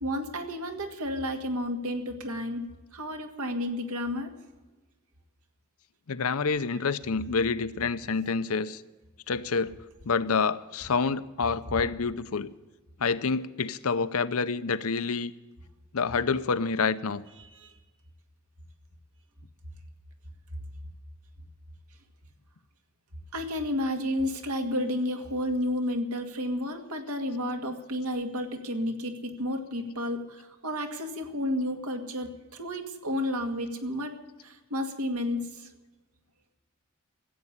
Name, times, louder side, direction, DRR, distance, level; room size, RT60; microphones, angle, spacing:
voice 1, 0.0-4.3 17.4-17.8 23.3-34.1 34.4-35.7, left 1 dB, 80° right, 5 dB, 2.2 m, -31 dB
voice 2, 6.1-8.8 9.3-9.7 10.0-12.5 13.0-15.3 15.9-17.2, left 4 dB, 75° left, 14 dB, 0.7 m, -27 dB
15.0 x 8.4 x 9.9 m, 1.2 s
head